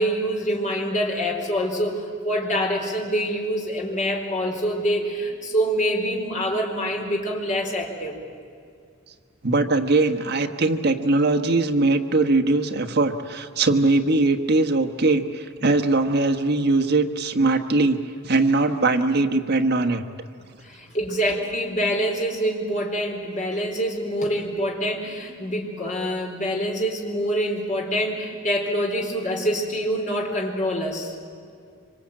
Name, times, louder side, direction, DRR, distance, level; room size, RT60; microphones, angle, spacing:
voice 1, 0.0-8.2 20.6-31.1, equal, 35° left, 0 dB, 4.3 m, -25 dB
voice 2, 9.4-20.0, right 2 dB, 50° right, 6 dB, 1.4 m, -21 dB
25.5 x 25.0 x 8.9 m, 2.3 s
head